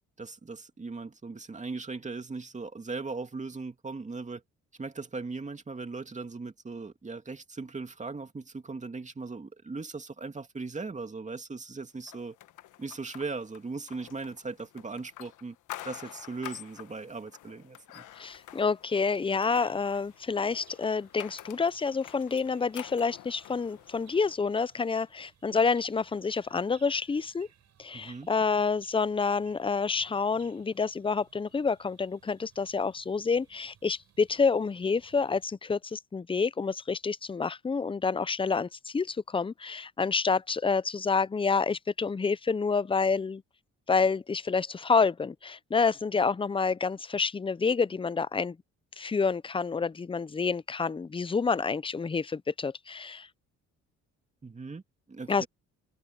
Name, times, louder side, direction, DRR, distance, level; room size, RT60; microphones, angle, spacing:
voice 1, 0.2-4.4 4.8-12.4 12.8-15.6 15.8-18.1 27.9-28.3 54.4-54.8 55.1-55.5, right 3 dB, 25° right, 2.3 m, -38 dB
sound 1, 12.1-24.3, left 14 dB, 80° left, 1.3 m, -48 dB
voice 2, 18.2-27.5 27.8-43.4 43.9-48.6 49.0-53.3 55.3-55.5, left 5 dB, 15° left, 0.5 m, -28 dB
sound 2, 19.0-35.5, right 9 dB, 65° right, 4.7 m, -63 dB
cardioid pair, 90°, 30 cm